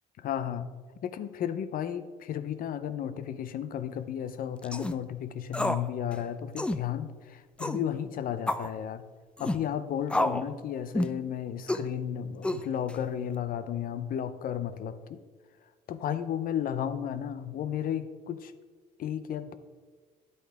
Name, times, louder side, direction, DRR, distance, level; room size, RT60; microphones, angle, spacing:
voice 1, 0.2-0.7 1.0-9.0 9.4-15.2 15.9-18.5 19.0-19.5, left 9 dB, 55° left, 12 dB, 0.7 m, -33 dB
sound 1, 4.6-5.0 5.5-5.9 6.1-6.2 6.6-6.8 7.6-7.8 8.5-8.7 9.4-9.6 10.1-10.5 10.9-11.2 11.7-11.9 12.4-12.9, left 1 dB, 5° left, 0.4 m, -29 dB
11.0 x 8.3 x 3.5 m, 1.5 s
cardioid pair, 110°, 17 cm